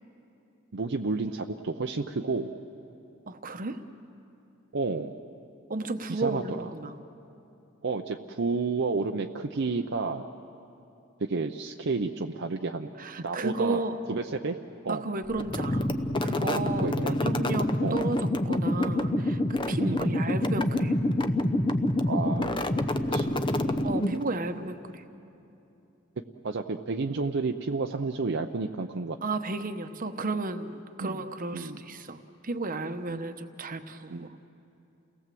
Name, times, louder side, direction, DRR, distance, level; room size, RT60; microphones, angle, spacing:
voice 1, 0.7-2.5 4.7-5.1 6.1-6.7 7.8-10.2 11.2-12.9 13.2-13.8 14.1-14.6 14.8-15.0 16.8-17.2 17.8-18.1 19.8-20.2 22.1-22.6 23.1-23.4 26.4-29.2 31.0-31.2 31.5-31.8 33.1-33.2 34.1-34.3, right 3 dB, 60° right, 4 dB, 0.7 m, -31 dB
voice 2, 3.3-3.8 5.7-7.0 13.0-14.0 14.9-15.9 16.2-19.4 19.7-20.9 23.8-25.0 29.2-34.3, right 3 dB, 45° right, 9 dB, 1.0 m, -33 dB
sound 1, 15.4-24.4, left 1 dB, 25° left, 0.7 m, -27 dB
29.0 x 18.5 x 7.6 m, 2.8 s
head